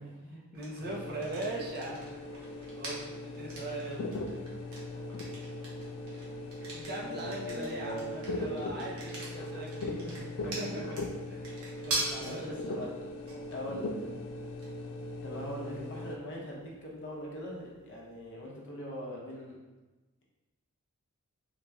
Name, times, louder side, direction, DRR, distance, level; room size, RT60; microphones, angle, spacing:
voice 1, 0.0-0.4 4.9-5.3 7.0-8.8 9.9-10.8 11.9-13.0 13.5-14.2 15.2-19.6, equal, 55° left, -3 dB, 0.8 m, -41 dB
voice 2, 0.5-2.3 2.8-4.1 6.7-10.0 10.4-11.0 11.3-12.6, right 1 dB, 45° right, -3 dB, 0.7 m, -40 dB
sound 1, 0.5-18.3, right 2 dB, 75° right, 0.9 m, -44 dB
sound 2, 0.8-16.2, left 2 dB, 85° left, 0.4 m, -40 dB
3.8 x 2.9 x 2.3 m, 1.2 s
head